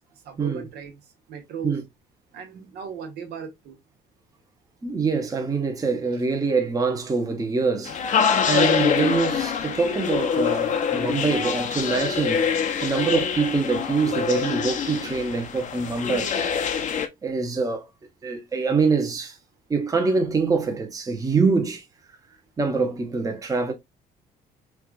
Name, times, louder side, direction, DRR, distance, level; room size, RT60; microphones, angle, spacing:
voice 1, 0.2-1.0 1.3-1.8 2.3-3.8, right 6 dB, 75° right, 1.1 m, -36 dB
voice 2, 4.8-8.2 8.4-16.3 17.2-17.9 18.2-19.4 19.7-21.8 22.6-23.7, right 4 dB, 20° right, 0.8 m, -24 dB
sound 1, 7.9-17.1, left 7 dB, 50° left, 0.7 m, -25 dB
4.6 x 2.4 x 2.3 m
cardioid pair, 110°, 17 cm